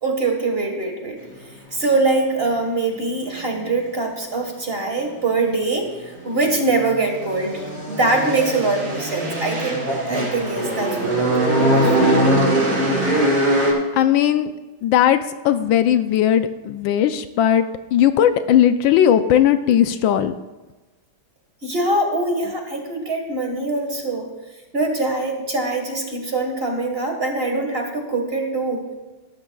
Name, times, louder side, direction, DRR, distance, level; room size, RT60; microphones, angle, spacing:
voice 1, 0.0-1.2 1.7-12.1 21.6-24.3 24.7-28.8, right 2 dB, 30° right, 2 dB, 1.7 m, -23 dB
sound 1, 6.1-13.7, right 1 dB, 60° right, 5.5 m, -21 dB
voice 2, 13.9-14.5 14.8-20.3, left 10 dB, 75° left, 10 dB, 1.3 m, -17 dB
19.0 x 12.5 x 2.3 m, 1.2 s
omnidirectional pair, 2.2 m